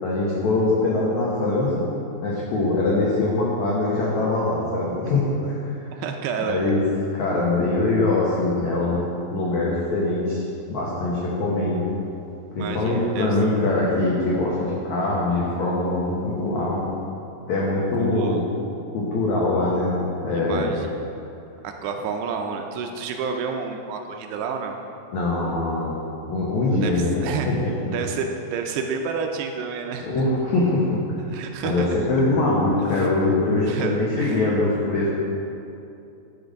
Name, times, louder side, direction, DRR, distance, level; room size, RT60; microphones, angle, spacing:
voice 1, 0.0-1.9 2.2-5.9 6.5-6.8 7.1-9.0 9.3-11.8 12.5-16.8 17.5-18.4 18.9-19.9 20.2-20.8 25.1-25.9 26.2-27.9 30.0-31.0 31.6-35.1, left 2 dB, 90° left, -5 dB, 1.6 m, -23 dB
voice 2, 5.9-6.6 12.6-13.3 18.0-18.4 20.5-21.1 21.6-24.8 26.7-27.5 27.9-30.1 31.3-32.1 32.9-33.1 33.6-34.4, right 5 dB, 80° right, 4 dB, 2.5 m, -30 dB
12.0 x 5.9 x 5.1 m, 2.8 s
omnidirectional pair, 5.1 m